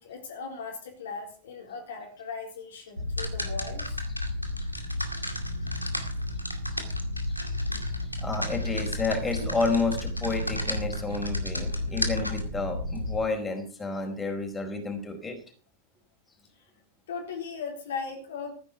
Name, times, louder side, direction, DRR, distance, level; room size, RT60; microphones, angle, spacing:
voice 1, 0.0-4.0 17.1-18.5, left 5 dB, 60° left, 2 dB, 4.0 m, -38 dB
sound 1, 3.0-13.2, left 1 dB, 90° left, 2.2 m, -31 dB
voice 2, 7.3-7.7 8.2-15.4, left 3 dB, 15° left, 4 dB, 4.7 m, -31 dB
15.0 x 10.0 x 6.1 m, 0.39 s
figure-of-eight pair, 90°, 0 cm